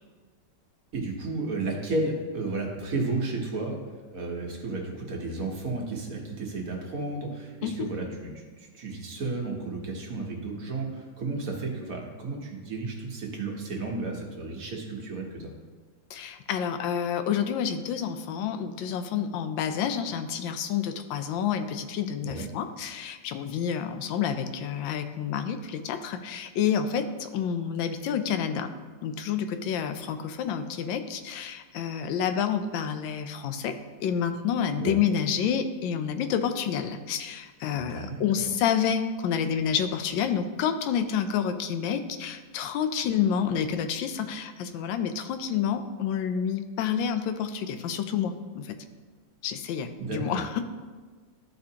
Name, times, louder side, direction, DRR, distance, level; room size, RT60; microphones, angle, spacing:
voice 1, 0.9-3.8 4.1-15.5 22.2-22.5 34.8-35.0 37.7-38.5 50.0-50.4, right 3 dB, 50° right, 0 dB, 1.4 m, -33 dB
voice 2, 16.1-28.7 29.0-33.7 34.0-48.8 49.4-50.6, left 8 dB, 85° left, 8 dB, 1.3 m, -29 dB
12.5 x 4.3 x 2.8 m, 1.4 s
omnidirectional pair, 2.1 m